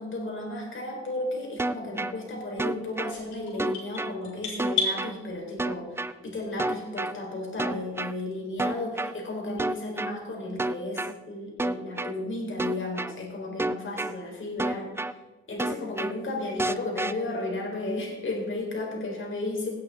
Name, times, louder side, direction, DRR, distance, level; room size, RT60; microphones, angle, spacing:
voice 1, 0.0-14.9 15.5-19.7, left 2 dB, 40° left, 0 dB, 4.4 m, -34 dB
sound 1, 1.6-2.1 2.6-3.1 3.6-4.1 4.6-5.1 5.6-6.1 6.6-7.1 7.6-8.1 8.6-9.1 9.6-10.1 10.6-11.1 11.6-12.1 12.6-13.1 13.6-14.1 14.6-15.1 15.6-16.1 16.6-17.1, right 2 dB, 10° right, 0.4 m, -28 dB
sound 2, 3.1-5.0, left 4 dB, 70° left, 4.6 m, -31 dB
17.5 x 8.4 x 3.8 m, 1.3 s
cardioid pair, 90°, 30 cm